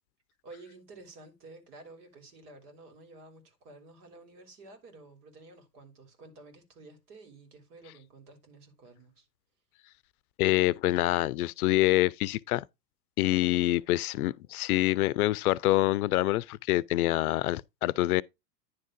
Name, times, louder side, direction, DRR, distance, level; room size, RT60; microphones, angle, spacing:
voice 1, 0.4-9.3, right 2 dB, 65° right, 3.4 m, -52 dB
voice 2, 10.4-12.6 13.2-18.2, left 16 dB, 60° left, 0.6 m, -26 dB
10.0 x 3.7 x 5.2 m
hypercardioid pair, 105°, 50 cm